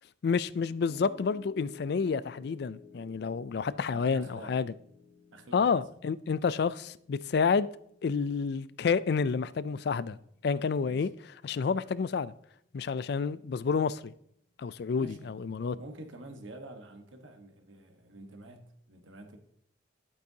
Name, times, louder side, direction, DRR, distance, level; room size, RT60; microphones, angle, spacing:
voice 1, 0.2-4.7 5.5-7.7 8.0-10.2 10.4-11.1 11.4-12.3 12.7-14.1 14.6-15.8, left 5 dB, 55° left, 0.3 m, -29 dB
Piano, 0.9-13.1, left 5 dB, 30° left, 1.5 m, -55 dB
voice 2, 3.9-4.5 5.3-5.8 10.8-11.1 14.9-15.3 15.7-19.4, right 1 dB, 80° right, 1.3 m, -48 dB
11.0 x 8.5 x 2.8 m
head